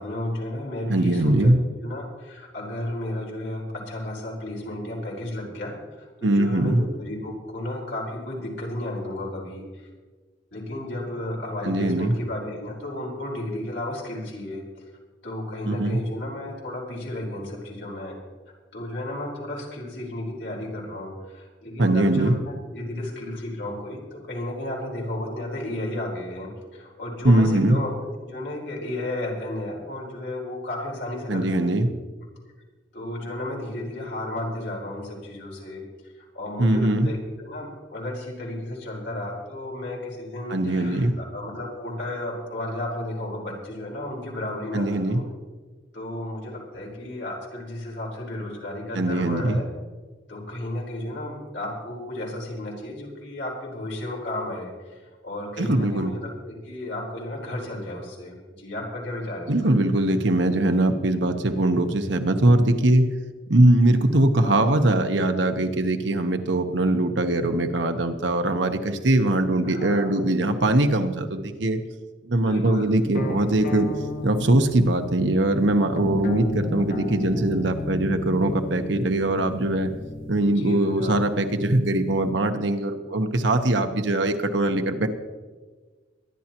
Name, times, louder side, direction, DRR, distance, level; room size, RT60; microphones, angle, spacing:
voice 1, 0.0-1.5 1.8-9.9 10.5-14.6 15.2-18.2 18.7-27.9 28.2-31.5 32.9-35.8 36.2-45.2 45.9-49.6 50.3-59.7 64.4-64.7 69.6-70.1 72.4-72.9 80.4-81.2, left 1 dB, 65° left, -3 dB, 4.3 m, -33 dB
voice 2, 0.9-1.6 6.2-6.8 11.6-12.1 15.7-16.0 21.8-22.4 27.2-27.8 31.3-31.9 36.6-37.1 40.5-41.1 44.7-45.2 48.9-49.6 55.6-56.1 59.5-63.1 63.5-71.8 72.3-73.9 74.2-79.9 80.3-85.1, right 1 dB, 70° right, 7 dB, 1.0 m, -21 dB
sound 1, 73.1-80.6, left 2 dB, 50° left, 1.0 m, -33 dB
23.0 x 11.0 x 3.0 m, 1.4 s
head